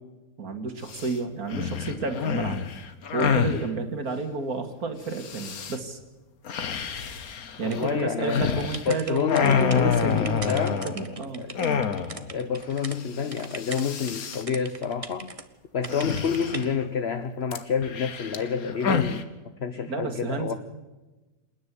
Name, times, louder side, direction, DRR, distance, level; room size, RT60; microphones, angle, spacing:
voice 1, 0.4-2.6 3.1-6.0 7.6-11.5 19.9-20.6, right 4 dB, 65° right, 6 dB, 2.6 m, -31 dB
sound 1, 0.9-1.1 1.5-3.6 5.1-5.8 6.5-8.9 9.2-11.1 11.6-12.3 12.6-12.7 13.0-13.3 13.5-14.4 15.9-16.8 17.5-19.2, left 6 dB, 65° left, 1.7 m, -28 dB
voice 2, 7.6-10.8 11.4-11.6 12.3-15.3 15.7-19.3 19.6-20.5, left 6 dB, 50° left, 10 dB, 1.0 m, -28 dB
sound 2, 7.7-13.0 13.3-15.4 15.8-16.7, right 3 dB, 25° right, 1.0 m, -41 dB
27.5 x 10.5 x 9.8 m, 1.1 s
omnidirectional pair, 1.7 m